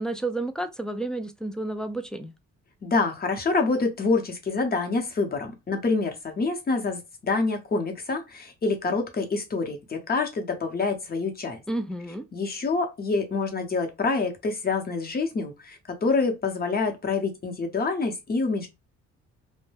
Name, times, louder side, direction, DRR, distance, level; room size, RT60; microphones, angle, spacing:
voice 1, 0.0-2.3 11.7-12.2, right 2 dB, 5° left, 0.3 m, -31 dB
voice 2, 2.8-11.6 12.3-18.7, left 3 dB, 30° left, 0.8 m, -26 dB
2.2 x 2.1 x 3.2 m
cardioid pair, 90°, 30 cm